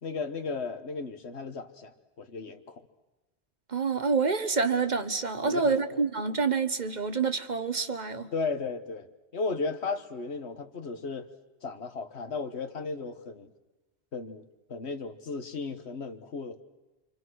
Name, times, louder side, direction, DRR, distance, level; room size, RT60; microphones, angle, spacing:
voice 1, 0.0-2.9 5.4-6.0 8.3-9.1 9.3-11.3 11.6-13.5 14.1-14.4 14.7-16.6, left 4 dB, 85° left, 8 dB, 1.7 m, -35 dB
voice 2, 3.7-8.3, right 4 dB, 45° right, 10 dB, 1.2 m, -27 dB
28.0 x 26.0 x 6.3 m, 1.1 s
omnidirectional pair, 1.1 m